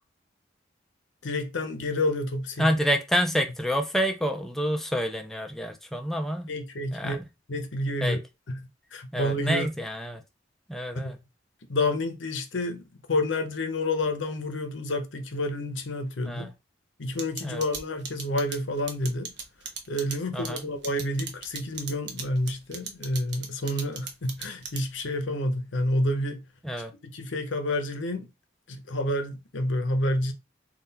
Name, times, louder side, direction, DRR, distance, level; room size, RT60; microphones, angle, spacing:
voice 1, 1.2-2.7 6.5-7.2 7.5-8.2 8.5-9.7 11.0-11.2 11.7-16.5 17.0-19.3 19.9-26.5 26.8-28.3 28.7-30.3, left 1 dB, 75° left, 0.8 m, -29 dB
voice 2, 2.6-6.5 6.9-7.2 8.0-8.2 9.1-10.2 10.7-11.2 16.3-16.5 17.4-17.6 20.3-20.7 26.6-26.9, equal, ahead, 0.4 m, -28 dB
sound 1, 17.2-25.1, right 6 dB, 65° right, 0.9 m, -37 dB
3.8 x 2.4 x 4.1 m
head